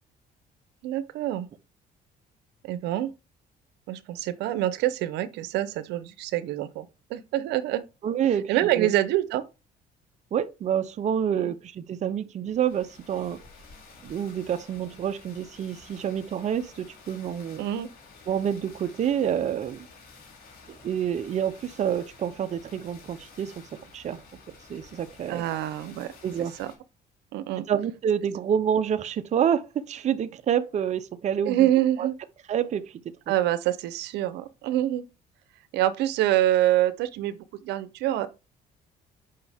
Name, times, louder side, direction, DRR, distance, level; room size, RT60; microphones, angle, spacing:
voice 1, 0.8-1.5 2.6-3.1 3.9-7.8 8.5-9.4 11.4-11.5 17.6-17.9 25.3-26.1 26.6-26.7 27.3-27.7 31.5-32.1 33.3-35.0 35.7-38.3, right 13 dB, 85° right, 0.8 m, -26 dB
voice 2, 8.0-8.9 10.3-13.4 14.0-17.6 18.3-19.9 20.8-23.7 23.9-24.2 24.7-25.4 26.2-26.5 27.6-31.7 32.0-32.1 32.5-33.0, right 8 dB, 45° right, 0.7 m, -28 dB
sound 1, 12.5-26.8, left 4 dB, 65° left, 5.1 m, -51 dB
8.7 x 5.5 x 3.5 m
cardioid pair, 110°, 17 cm